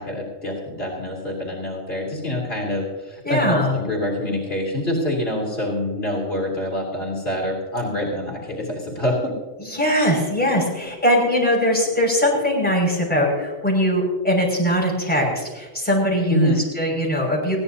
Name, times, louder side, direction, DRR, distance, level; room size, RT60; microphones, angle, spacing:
voice 1, 0.0-9.2 16.3-16.7, left 1 dB, 55° left, -3 dB, 3.5 m, -25 dB
voice 2, 3.2-3.8 9.6-17.6, equal, 5° left, -3 dB, 5.9 m, -21 dB
21.0 x 16.5 x 2.8 m, 1.3 s
omnidirectional pair, 1.2 m